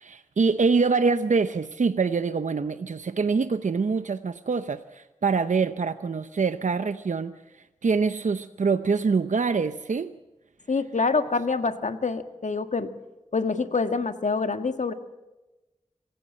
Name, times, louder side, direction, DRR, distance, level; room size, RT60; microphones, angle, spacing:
voice 1, 0.0-10.1, right 4 dB, 80° right, 10 dB, 0.8 m, -25 dB
voice 2, 10.7-12.9 13.3-14.9, left 4 dB, 75° left, 9 dB, 1.7 m, -26 dB
26.0 x 16.0 x 7.6 m, 1.0 s
wide cardioid pair, 70°, 13 cm